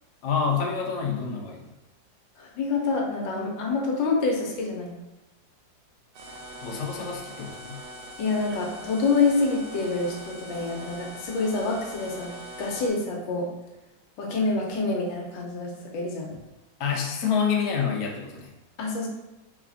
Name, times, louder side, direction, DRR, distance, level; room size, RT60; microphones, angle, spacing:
voice 1, 0.2-1.6 6.6-7.8 16.8-18.5, left 6 dB, 70° left, 0 dB, 1.2 m, -27 dB
voice 2, 2.4-4.9 8.2-12.3 12.6-13.5 14.2-16.3 18.8-19.1, left 3 dB, 85° left, -1 dB, 1.4 m, -27 dB
sound 1, 6.1-12.9, right 1 dB, 75° right, 1.3 m, -42 dB
4.0 x 3.2 x 2.5 m, 1.0 s
omnidirectional pair, 2.0 m